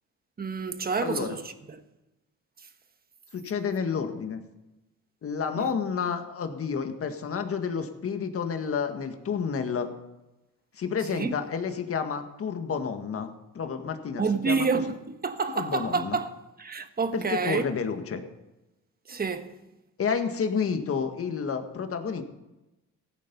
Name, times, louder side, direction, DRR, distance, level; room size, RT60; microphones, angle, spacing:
voice 1, 0.4-1.8 5.6-5.7 11.1-11.3 14.2-16.3 16.6-17.7 19.1-19.5, right 4 dB, 30° right, 1.3 m, -28 dB
voice 2, 1.0-1.4 3.3-4.4 5.2-9.9 10.7-14.7 15.5-16.2 17.1-18.2 20.0-22.2, left 6 dB, 45° left, 1.8 m, -30 dB
16.0 x 9.2 x 5.5 m
cardioid pair, 90°, 31 cm